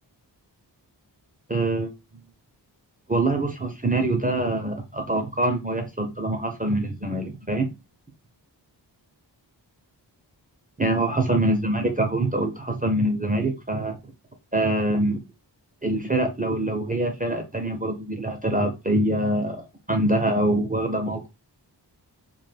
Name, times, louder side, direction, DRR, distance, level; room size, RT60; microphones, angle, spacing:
voice 1, 1.5-1.9 3.1-7.7 10.8-14.0 14.5-15.2 15.8-21.3, right 1 dB, 20° right, 0.4 m, -24 dB
2.1 x 2.1 x 3.3 m
wide cardioid pair, 70°, 43 cm